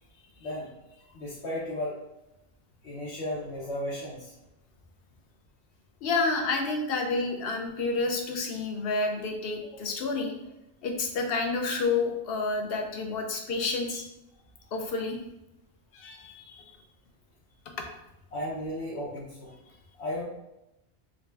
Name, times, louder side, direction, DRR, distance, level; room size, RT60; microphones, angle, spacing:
voice 1, 0.4-0.7 1.1-1.9 2.8-4.3 18.3-19.5 20.0-20.2, left 1 dB, 90° left, -7 dB, 1.1 m, -34 dB
voice 2, 6.0-10.3 10.8-14.1 14.7-15.2 15.9-16.8 17.8-17.9, left 3 dB, 65° left, 3 dB, 0.8 m, -29 dB
3.8 x 2.1 x 3.3 m, 0.89 s
omnidirectional pair, 1.1 m